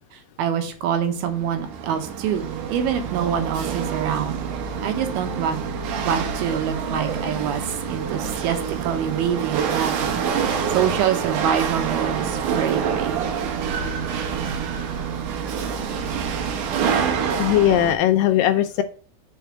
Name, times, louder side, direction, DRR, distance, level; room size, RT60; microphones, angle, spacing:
voice 1, 0.1-4.4 4.8-5.6 6.0-13.4, right 9 dB, 85° right, 7 dB, 3.0 m, -26 dB
Chatter / Hiss / Rattle, 1.0-17.9, right 6 dB, 70° right, 2.3 m, -26 dB
voice 2, 17.4-18.8, left 12 dB, 80° left, 8 dB, 2.1 m, -18 dB
5.6 x 5.2 x 6.4 m, 0.41 s
omnidirectional pair, 4.3 m